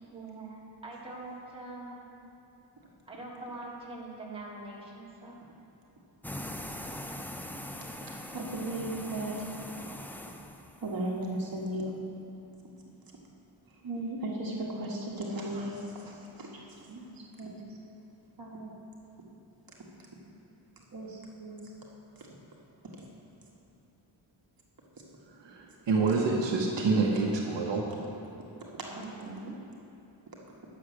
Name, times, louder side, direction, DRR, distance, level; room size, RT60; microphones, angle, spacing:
voice 1, 0.1-2.2 3.1-5.5 28.9-29.6, right 2 dB, 10° right, -5 dB, 1.8 m, -43 dB
sound 1, 6.2-11.0, left 1 dB, 5° left, 0.3 m, -41 dB
voice 2, 8.3-9.5 10.8-11.9 13.8-18.0 18.4-18.7 20.9-21.7 22.2-22.3 26.1-26.3, right 1 dB, 45° right, -2 dB, 1.5 m, -36 dB
voice 3, 25.3-27.8, right 4 dB, 65° right, -1 dB, 1.1 m, -27 dB
9.6 x 7.2 x 6.2 m, 3.0 s
wide cardioid pair, 140°, 47 cm